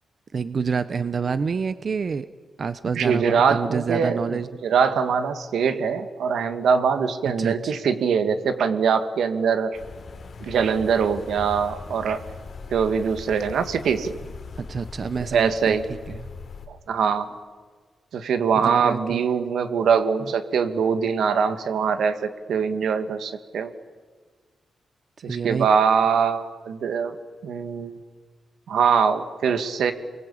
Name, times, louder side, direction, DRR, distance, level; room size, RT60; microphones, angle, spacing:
voice 1, 0.3-2.3 2.6-4.5 7.4-7.8 14.6-15.8 16.1-16.3 18.6-19.3 25.3-25.7, right 5 dB, 45° right, 13 dB, 0.7 m, -28 dB
voice 2, 3.0-9.8 10.4-12.2 12.7-14.3 15.3-15.9 16.7-17.3 18.1-23.7 25.2-27.2 27.4-28.0 28.7-29.9, right 6 dB, 85° right, 8 dB, 1.9 m, -23 dB
sound 1, 9.7-16.7, left 4 dB, 55° left, 3.2 m, -40 dB
28.0 x 23.0 x 8.6 m, 1.5 s
wide cardioid pair, 120°, 0 cm